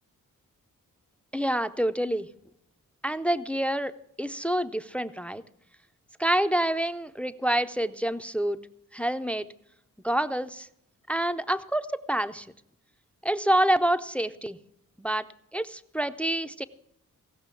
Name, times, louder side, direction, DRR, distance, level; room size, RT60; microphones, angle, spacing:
voice 1, 1.3-2.3 3.0-3.9 4.2-5.4 6.2-8.6 8.9-9.5 10.0-10.7 11.1-12.5 13.2-14.6 15.0-15.3 15.5-16.6, right 1 dB, 5° left, 12 dB, 0.5 m, -27 dB
17.0 x 6.3 x 8.2 m, 0.75 s
wide cardioid pair, 130°, 33 cm